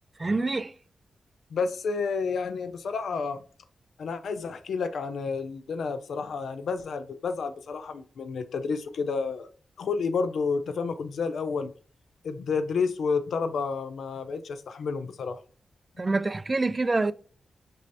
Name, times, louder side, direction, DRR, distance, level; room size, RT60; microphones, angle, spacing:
voice 1, 0.2-0.7 16.0-17.1, right 3 dB, 35° right, 0.3 m, -26 dB
voice 2, 1.5-3.4 4.0-9.5 9.8-11.7 12.2-15.4, left 5 dB, 80° left, 0.4 m, -30 dB
5.4 x 3.0 x 2.6 m
cardioid pair, 50°, 0 cm